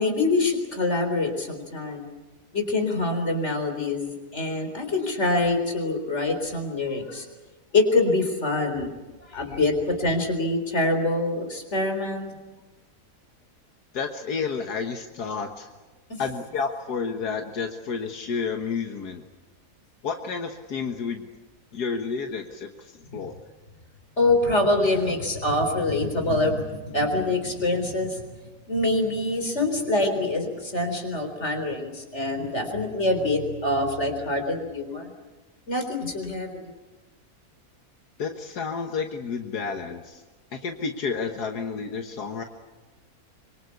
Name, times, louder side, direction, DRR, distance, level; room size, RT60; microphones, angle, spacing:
voice 1, 0.0-2.1 2.5-7.3 7.7-8.9 9.3-12.4 16.1-16.2 24.2-28.2 28.7-35.1 35.7-36.7, left 2 dB, 45° left, 6 dB, 4.2 m, -25 dB
voice 2, 13.9-15.7 16.2-19.2 20.0-21.3 21.7-23.4 38.2-40.2 40.5-42.4, left 5 dB, 85° left, 5 dB, 1.9 m, -30 dB
25.0 x 24.0 x 8.4 m, 1.2 s
omnidirectional pair, 1.7 m